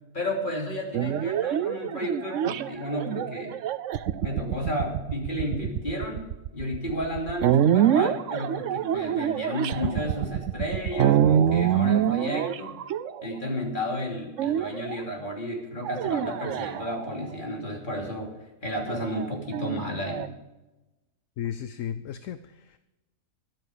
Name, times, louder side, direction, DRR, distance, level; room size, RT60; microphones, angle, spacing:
voice 1, 0.1-3.5 4.2-6.3 6.5-12.8 13.2-20.3, left 1 dB, 30° left, 0 dB, 3.1 m, -32 dB
sound 1, 0.9-13.6 14.4-15.0 15.8-17.3 18.9-20.3, right 10 dB, 65° right, 0.9 m, -26 dB
voice 2, 21.4-22.8, left 10 dB, 65° left, 11 dB, 0.9 m, -34 dB
13.5 x 12.0 x 5.0 m, 1.0 s
omnidirectional pair, 1.6 m